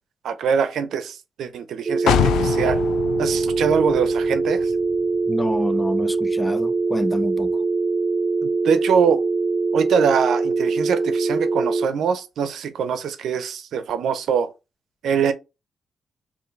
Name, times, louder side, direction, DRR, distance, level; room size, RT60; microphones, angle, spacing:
voice 1, 0.2-2.8 3.2-4.7 8.4-9.2 9.7-14.5 15.0-15.3, right 6 dB, 80° right, 0.6 m, -23 dB
sound 1, 1.9-11.9, right 3 dB, 30° right, 0.8 m, -23 dB
sound 2, 2.1-5.8 6.2-6.3, left 10 dB, 90° left, 0.3 m, -26 dB
voice 2, 5.3-7.6, left 1 dB, 15° left, 0.5 m, -27 dB
4.7 x 2.8 x 3.2 m
cardioid pair, 90°, 0 cm